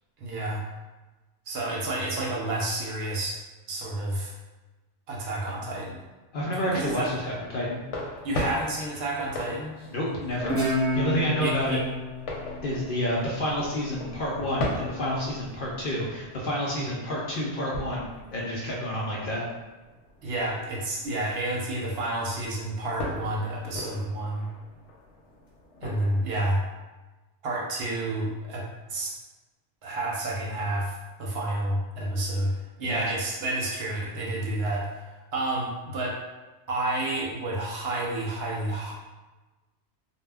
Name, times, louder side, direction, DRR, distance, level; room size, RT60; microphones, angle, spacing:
voice 1, 0.2-0.6 1.5-3.4 3.7-4.3 5.1-6.0 6.7-7.1 8.2-9.7 11.4-11.8 20.2-24.5 25.8-26.6 27.4-29.1 29.8-36.2 36.7-38.9, right 1 dB, 65° right, -3 dB, 0.7 m, -30 dB
voice 2, 6.3-7.8 9.9-11.8 12.6-19.4 32.8-33.0, equal, 60° left, -4 dB, 0.6 m, -29 dB
sound 1, 6.7-26.6, left 1 dB, 85° left, 0.9 m, -40 dB
Guitar, 10.5-13.7, equal, 15° right, 0.7 m, -30 dB
2.1 x 2.1 x 3.3 m, 1.2 s
omnidirectional pair, 1.2 m